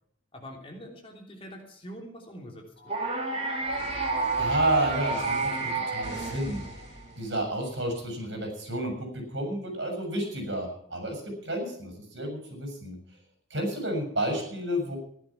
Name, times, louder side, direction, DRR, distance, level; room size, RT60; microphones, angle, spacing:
voice 1, 0.3-2.9, equal, 30° left, 2 dB, 3.2 m, -44 dB
sound 1, 2.8-7.3, left 1 dB, 65° left, 5.8 m, -43 dB
Baby Dinosaur, 2.9-7.1, right 3 dB, 30° right, 2.7 m, -30 dB
voice 2, 4.4-6.6 7.1-13.0 13.5-15.0, right 1 dB, 65° right, 3 dB, 6.6 m, -31 dB
15.0 x 11.5 x 5.9 m, 0.66 s
head